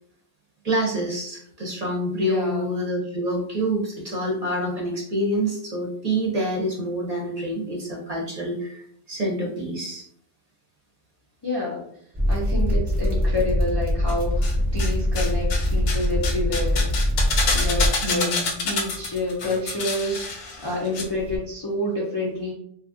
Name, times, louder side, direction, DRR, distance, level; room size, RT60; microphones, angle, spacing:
voice 1, 0.6-8.8 9.1-10.0 18.0-18.6, equal, 45° right, -2 dB, 0.6 m, -27 dB
voice 2, 2.2-2.7 11.4-11.8 12.3-16.8 17.4-18.4 18.6-20.3 20.6-22.5, left 2 dB, 35° left, -5 dB, 0.4 m, -28 dB
sound 1, 12.1-17.9, equal, 10° right, 0.7 m, -23 dB
sound 2, 14.1-14.9 15.1-21.0 21.3-21.4, left 3 dB, 70° left, 0.8 m, -28 dB
2.7 x 2.3 x 2.5 m, 0.67 s
omnidirectional pair, 1.1 m